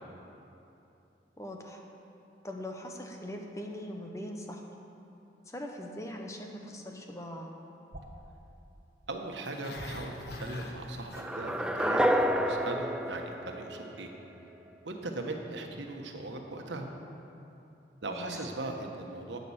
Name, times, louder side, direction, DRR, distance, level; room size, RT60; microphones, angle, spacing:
voice 1, 1.4-1.8 2.4-4.6 5.5-7.5 18.1-18.3, left 1 dB, 15° left, 2 dB, 1.0 m, -41 dB
sound 1, 7.9-8.2 9.7-10.5, right 1 dB, 55° right, 1.3 m, -46 dB
voice 2, 9.1-14.1 14.8-16.9 18.0-19.4, right 2 dB, 90° right, 2 dB, 1.3 m, -39 dB
Growling, 9.4-11.7 12.0-12.4 12.7-12.8, left 1 dB, 60° left, 1.3 m, -43 dB
sound 2, 11.1-14.2, equal, 5° right, 0.4 m, -29 dB
11.0 x 9.2 x 7.3 m, 2.9 s
head